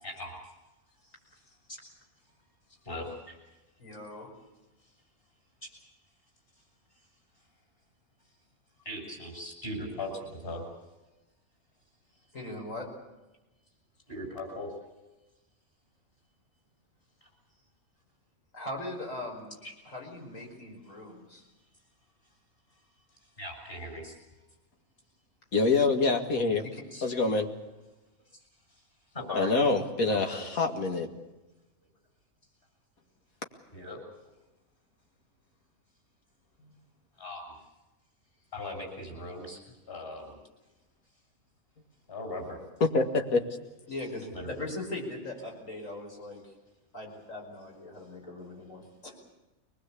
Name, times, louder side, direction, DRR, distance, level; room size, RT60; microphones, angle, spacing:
voice 1, 2.8-3.4 5.6-5.7 8.8-10.6 14.1-14.7 19.6-19.7 23.4-24.1 26.9-27.1 29.1-29.6 30.1-30.4 33.7-34.0 37.2-37.6 38.5-39.6 39.9-40.4 42.1-42.6 44.3-44.6, left 1 dB, 40° left, 1 dB, 7.7 m, -39 dB
voice 2, 3.8-4.3 12.3-12.9 18.5-19.6 19.9-21.4 26.7-26.8 36.6-36.7 43.9-46.4 46.9-49.1, left 2 dB, 65° left, 0 dB, 5.8 m, -40 dB
voice 3, 25.5-26.6 27.0-27.5 29.3-31.1 42.8-43.4, left 3 dB, 90° left, 5 dB, 2.5 m, -25 dB
24.0 x 20.5 x 8.4 m, 1.1 s
omnidirectional pair, 1.4 m